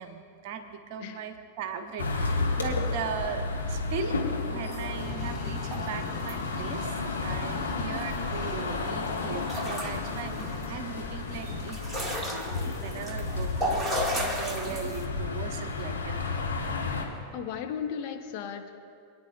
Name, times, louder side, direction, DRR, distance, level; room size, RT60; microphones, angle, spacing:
voice 1, 0.0-4.2 4.5-16.4, right 6 dB, 45° right, 7 dB, 1.0 m, -38 dB
sound 1, 2.0-17.0, left 3 dB, 75° left, 1.4 m, -32 dB
sound 2, 4.6-6.4 6.7-7.1 7.6-7.7 7.8-8.5 8.8-15.0, equal, 5° right, 1.6 m, -35 dB
sound 3, 4.9-12.3, left 4 dB, 15° left, 2.3 m, -40 dB
voice 2, 17.3-18.7, left 7 dB, 45° left, 4 dB, 0.9 m, -35 dB
28.0 x 9.8 x 2.3 m, 2.3 s
figure-of-eight pair, 90°, 0 cm